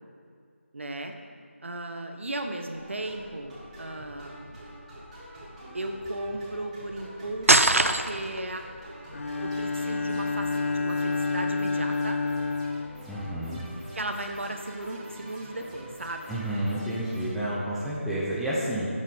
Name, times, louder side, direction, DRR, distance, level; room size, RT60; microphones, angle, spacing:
voice 1, 0.7-1.2 1.6-4.3 5.7-8.7 9.3-12.2 13.9-16.4, right 1 dB, 65° right, 5 dB, 1.2 m, -36 dB
sound 1, 2.7-17.3, right 1 dB, 30° right, 2.9 m, -46 dB
sound 2, 7.5-8.4, right 2 dB, 90° right, 0.6 m, -20 dB
Bowed string instrument, 9.1-13.7, left 4 dB, 75° left, 0.4 m, -29 dB
voice 2, 13.1-13.6 16.3-18.9, right 1 dB, ahead, -9 dB, 0.8 m, -30 dB
11.5 x 7.8 x 5.2 m, 2.2 s
figure-of-eight pair, 165°, 7 cm